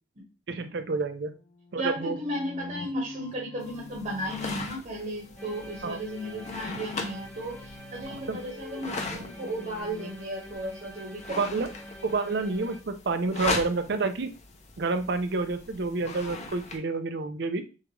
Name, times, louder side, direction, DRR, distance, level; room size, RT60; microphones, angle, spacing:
voice 1, 0.5-1.3 1.7-2.1 5.8-6.0 8.1-8.4 11.4-11.7 12.0-14.3 14.8-17.6, right 3 dB, 60° right, 9 dB, 0.5 m, -29 dB
sound 1, 1.2-10.1, left 2 dB, 70° left, 0.7 m, -47 dB
voice 2, 1.8-11.7, right 1 dB, 40° right, -3 dB, 1.1 m, -35 dB
sound 2, 3.6-16.8, left 3 dB, 35° left, 0.7 m, -39 dB
sound 3, 5.4-12.8, equal, 5° left, 0.7 m, -46 dB
6.5 x 2.5 x 3.0 m, 0.33 s
head